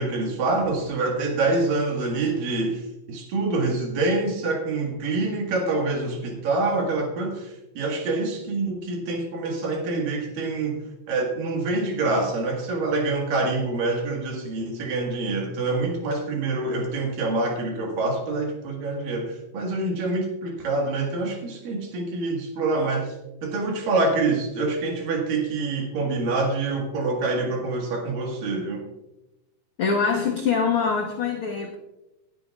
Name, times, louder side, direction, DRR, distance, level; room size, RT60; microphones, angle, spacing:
voice 1, 0.0-2.8 3.1-10.8 11.1-23.2 23.4-28.9, right 3 dB, 80° right, 1 dB, 3.4 m, -26 dB
voice 2, 29.8-31.8, left 5 dB, 70° left, 1 dB, 1.3 m, -24 dB
19.5 x 10.5 x 2.4 m, 0.94 s
omnidirectional pair, 3.9 m